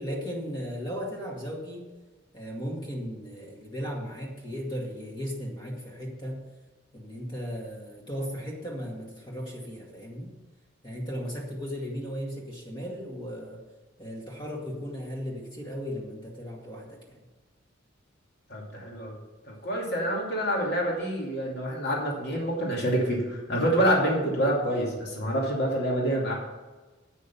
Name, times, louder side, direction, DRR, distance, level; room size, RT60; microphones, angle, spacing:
voice 1, 0.0-1.9 2.3-6.5 6.9-10.3 10.8-13.6 14.0-17.2, equal, 25° left, -1 dB, 2.2 m, -36 dB
voice 2, 18.5-19.1 19.5-26.3, equal, 55° left, -2 dB, 2.6 m, -27 dB
8.6 x 6.6 x 7.0 m, 1.2 s
head